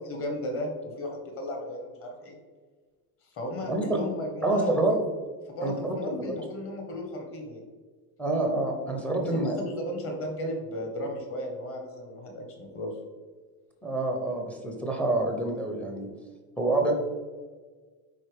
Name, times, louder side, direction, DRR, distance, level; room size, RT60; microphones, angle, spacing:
voice 1, 0.0-2.3 3.3-4.8 5.5-7.6 9.2-12.9, left 1 dB, 30° left, 2 dB, 1.3 m, -35 dB
voice 2, 3.7-4.0 4.4-5.0 5.6-6.3 8.2-9.6 13.8-16.1 16.6-16.9, right 2 dB, 5° left, 2 dB, 0.5 m, -27 dB
9.8 x 3.9 x 3.4 m, 1.4 s
cardioid pair, 175°, 43 cm